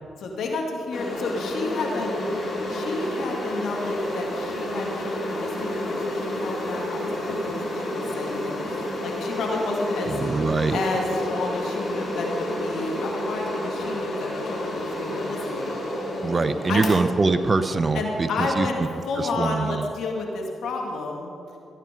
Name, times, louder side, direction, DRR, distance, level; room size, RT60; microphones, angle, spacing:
voice 1, 0.2-10.1 10.7-15.7 16.7-17.0 17.9-18.8 19.0-21.3, left 3 dB, 70° left, 1 dB, 2.0 m, -31 dB
sound 1, 0.9-19.4, left 1 dB, 50° left, 3.4 m, -30 dB
voice 2, 10.1-10.8 16.2-18.7 19.2-19.9, right 3 dB, 35° right, 11 dB, 0.8 m, -23 dB
15.5 x 9.1 x 5.2 m, 2.5 s
hypercardioid pair, 40°, 0 cm